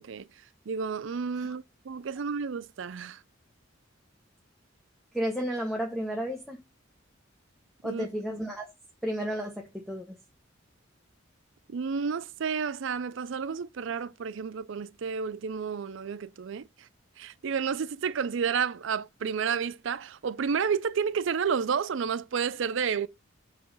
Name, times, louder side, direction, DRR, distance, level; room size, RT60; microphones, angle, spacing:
voice 1, 0.0-3.2 7.8-8.1 11.7-16.9 17.2-23.1, right 6 dB, 70° right, 0.4 m, -31 dB
voice 2, 5.1-6.6 7.8-8.7 9.0-10.2, equal, ahead, 0.8 m, -32 dB
6.7 x 3.1 x 5.3 m
head